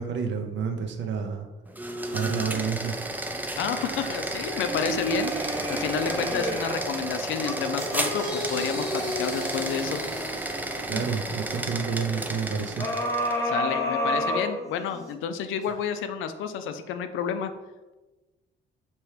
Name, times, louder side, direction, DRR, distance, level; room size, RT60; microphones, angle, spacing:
voice 1, 0.0-1.5 2.1-3.1 10.8-12.9, right 6 dB, 70° right, 5 dB, 0.6 m, -29 dB
sound 1, 1.7-13.4, right 1 dB, 10° right, 0.4 m, -32 dB
voice 2, 3.6-10.0 13.4-17.5, left 7 dB, 85° left, 9 dB, 0.4 m, -30 dB
sound 2, 3.7-6.9 7.4-11.1 12.8-15.1 15.6-15.7, left 1 dB, 15° left, 1.0 m, -31 dB
4.4 x 3.0 x 3.3 m, 1.2 s
cardioid pair, 90°, 20 cm